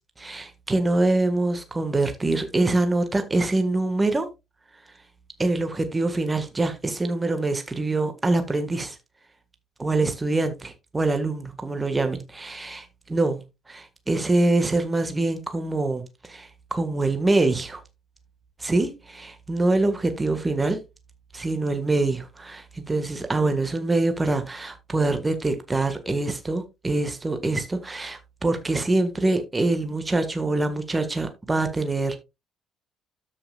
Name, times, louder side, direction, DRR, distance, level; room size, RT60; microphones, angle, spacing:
voice 1, 0.2-4.3 5.4-9.0 9.8-17.8 18.6-20.8 21.3-32.2, right 2 dB, 20° right, 1.6 m, -24 dB
13.0 x 5.9 x 2.4 m
figure-of-eight pair, 50°, 0 cm